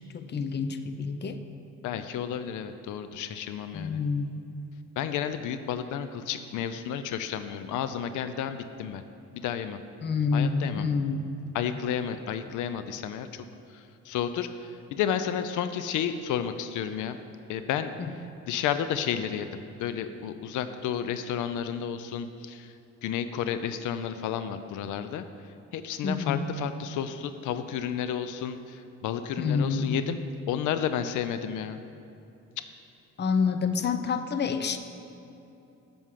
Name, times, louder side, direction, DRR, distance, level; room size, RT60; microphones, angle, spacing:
voice 1, 0.1-1.4 3.7-4.4 10.0-11.3 18.0-18.1 26.0-26.5 29.4-30.0 33.2-34.8, left 5 dB, 35° left, 9 dB, 0.6 m, -28 dB
voice 2, 1.8-4.0 5.0-9.0 9.3-9.8 10.3-10.9 11.5-13.4 13.7-17.2 17.5-22.7 23.0-25.2 25.7-30.2 30.5-31.8 32.6-32.7, left 9 dB, 85° left, 11 dB, 0.5 m, -32 dB
7.0 x 6.3 x 7.4 m, 2.9 s
cardioid pair, 90°, 30 cm